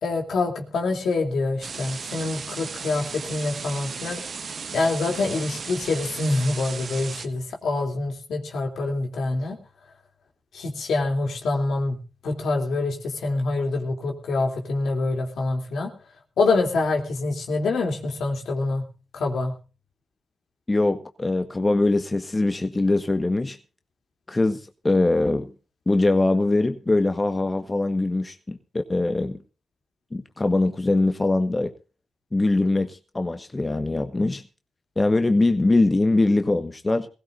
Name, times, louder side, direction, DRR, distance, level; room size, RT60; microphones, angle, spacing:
voice 1, 0.0-4.2 4.7-9.6 10.5-12.0 12.2-15.9 16.4-18.9 19.1-19.5, left 3 dB, 80° left, 3.0 m, -25 dB
sound 1, 1.6-7.3, right 5 dB, 65° right, 1.4 m, -35 dB
voice 2, 20.7-23.6 24.3-25.5 25.9-29.4 30.1-31.7 32.3-34.4 35.0-37.1, left 2 dB, 30° left, 1.4 m, -22 dB
21.5 x 16.0 x 2.6 m
supercardioid pair, 45°, 0 cm